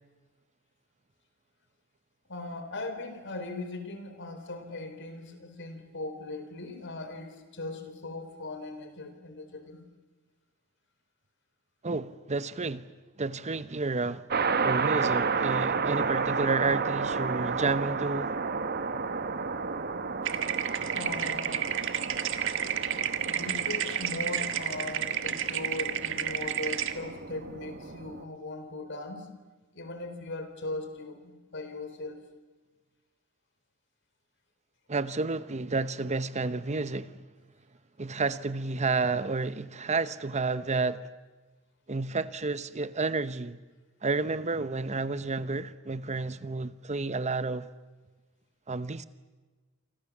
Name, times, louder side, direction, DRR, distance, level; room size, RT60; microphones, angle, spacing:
voice 1, 2.3-9.8 20.9-21.7 23.2-29.3 29.7-32.2, left 2 dB, 60° left, 4.0 m, -39 dB
voice 2, 11.8-12.9 13.2-14.2 14.6-18.3 34.9-37.2 38.0-41.1 41.9-43.6 44.0-47.7 48.7-49.0, right 3 dB, 35° right, 0.8 m, -30 dB
sound 1, 14.3-28.2, right 5 dB, 50° right, 1.2 m, -32 dB
sound 2, 20.2-26.9, right 10 dB, 65° right, 1.6 m, -31 dB
28.5 x 25.5 x 7.3 m
head